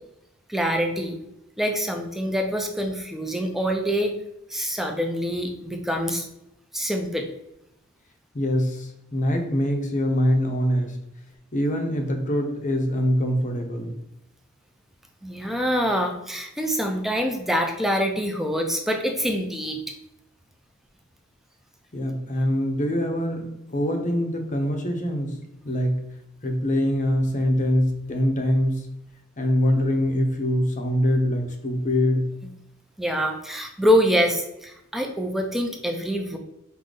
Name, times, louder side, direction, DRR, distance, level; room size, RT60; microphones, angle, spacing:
voice 1, 0.5-1.2 1.6-4.1 4.5-6.3 6.7-7.3 15.2-19.8 33.0-36.4, equal, ahead, 3 dB, 0.5 m, -25 dB
voice 2, 8.3-11.0 11.5-14.0 21.9-25.4 25.6-26.0 26.4-28.9 29.4-32.3, equal, 35° left, 4 dB, 0.7 m, -24 dB
5.0 x 2.7 x 3.9 m, 0.83 s
head